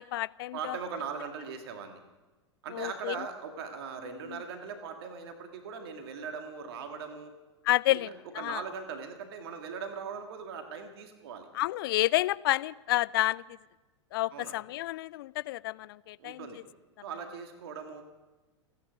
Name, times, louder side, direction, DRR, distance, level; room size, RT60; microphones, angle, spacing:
voice 1, 0.0-0.8 2.7-3.2 4.2-4.4 7.6-8.6 11.5-13.4 14.1-16.5, left 17 dB, 50° left, 21 dB, 0.4 m, -30 dB
voice 2, 0.5-2.0 2.6-7.3 7.9-8.1 8.4-11.5 14.3-14.6 16.2-16.6 17.0-18.0, right 6 dB, 55° right, 5 dB, 2.1 m, -40 dB
29.0 x 9.8 x 5.1 m, 1.2 s
figure-of-eight pair, 90°, 15 cm